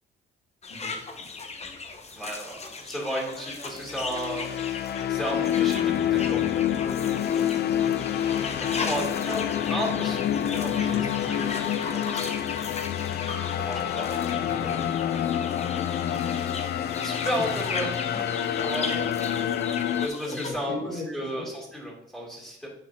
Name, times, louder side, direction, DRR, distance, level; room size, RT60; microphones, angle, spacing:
sound 1, 0.6-20.5, left 4 dB, 35° left, 1.0 m, -37 dB
voice 1, 2.1-4.5 5.1-6.4 8.7-9.4 9.7-11.0 11.3-12.3 13.6-14.0 15.9-16.1 17.0-17.9 18.6-19.4 19.8-20.8 21.1-22.7, equal, 5° left, -5 dB, 2.9 m, -33 dB
sound 2, 3.8-20.1, left 10 dB, 55° left, 0.4 m, -27 dB
voice 2, 6.1-6.5 8.5-9.0 10.7-11.4 14.3-14.8 17.5-17.6 18.0-18.2 20.3-21.4, left 2 dB, 75° left, -5 dB, 2.7 m, -38 dB
9.6 x 4.8 x 2.8 m, 0.77 s
cardioid pair, 90°, 20 cm